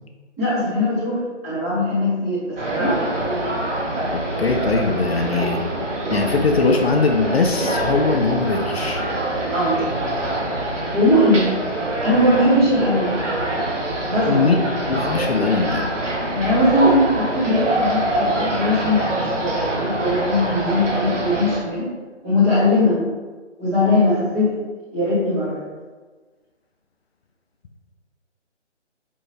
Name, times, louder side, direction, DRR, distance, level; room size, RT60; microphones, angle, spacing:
voice 1, 0.4-3.0 9.5-9.8 10.9-11.5 12.0-13.1 14.1-14.5 16.3-21.9 22.2-23.0 23.6-24.5 24.9-25.6, left 1 dB, 15° right, -10 dB, 1.1 m, -20 dB
sound 1, 2.6-21.6, right 1 dB, 85° right, 1.3 m, -24 dB
voice 2, 4.1-5.6 6.1-9.0 14.2-14.6 14.9-15.8, left 4 dB, 60° left, 3 dB, 0.5 m, -21 dB
5.3 x 2.7 x 3.2 m, 1.4 s
figure-of-eight pair, 155°, 36 cm